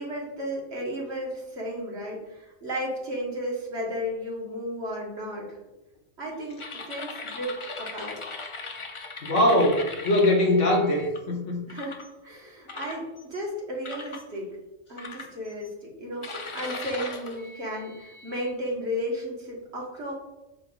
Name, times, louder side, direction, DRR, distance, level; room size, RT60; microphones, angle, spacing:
voice 1, 0.0-5.6 6.2-8.2 11.7-14.5 14.9-20.1, equal, 55° right, -3 dB, 1.7 m, -34 dB
sound 1, 6.6-11.2 11.7-12.1 12.7-13.4 13.8-14.2 15.0-15.7 16.2-18.5, left 3 dB, 45° left, 0.4 m, -39 dB
voice 2, 9.2-11.6, left 1 dB, 65° left, 0 dB, 1.4 m, -22 dB
7.5 x 5.5 x 2.3 m, 0.98 s
omnidirectional pair, 1.4 m